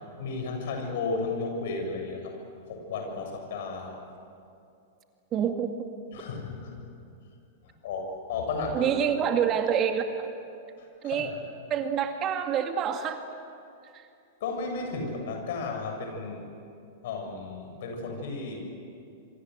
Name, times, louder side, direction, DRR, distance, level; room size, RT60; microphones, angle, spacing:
voice 1, 0.2-2.3 2.7-3.9 6.1-6.8 7.6-8.9 10.8-11.3 14.4-16.5 17.0-18.6, left 3 dB, 60° left, 3 dB, 7.3 m, -34 dB
voice 2, 5.3-5.7 8.7-10.3 11.0-11.3 11.7-13.2 13.9-14.1, right 8 dB, 35° right, 5 dB, 2.3 m, -27 dB
27.5 x 24.5 x 8.1 m, 2.5 s
figure-of-eight pair, 100°, 0 cm